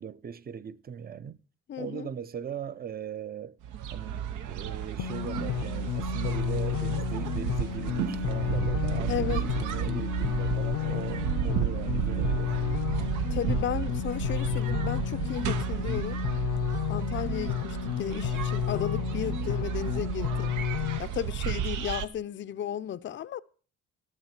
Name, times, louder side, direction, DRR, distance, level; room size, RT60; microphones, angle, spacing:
voice 1, 0.0-1.4 1.8-3.6 3.9-12.5, right 8 dB, 30° right, 0.6 m, -39 dB
voice 2, 1.7-2.1 9.1-9.4 13.3-16.2 16.9-20.6 21.0-23.4, left 10 dB, 40° left, 0.5 m, -34 dB
sound 1, 3.6-22.0, right 10 dB, 85° right, 0.8 m, -32 dB
sound 2, 5.0-21.0, left 12 dB, 85° left, 0.6 m, -32 dB
Wind instrument woodwind instrument, 7.8-13.0, right 8 dB, 60° right, 0.8 m, -45 dB
12.5 x 7.4 x 5.8 m
cardioid pair, 90°, 30 cm